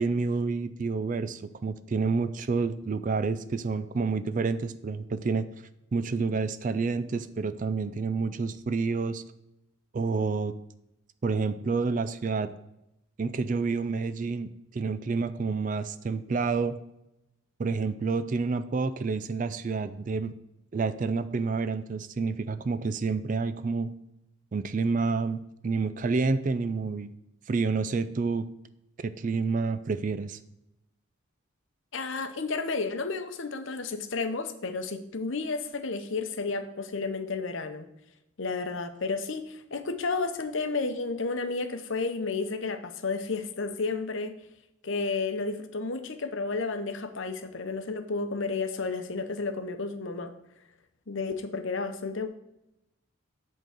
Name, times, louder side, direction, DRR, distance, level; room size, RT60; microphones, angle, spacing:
voice 1, 0.0-5.5 5.9-9.2 9.9-10.5 11.2-12.5 13.2-16.8 17.6-20.3 20.7-23.9 24.5-27.1 27.5-28.5 29.0-30.4, right 4 dB, 40° right, 13 dB, 0.3 m, -29 dB
voice 2, 31.9-37.9 38.4-44.3 44.8-50.3 51.1-52.3, left 4 dB, 65° left, 8 dB, 0.7 m, -32 dB
7.8 x 3.8 x 6.5 m, 0.87 s
head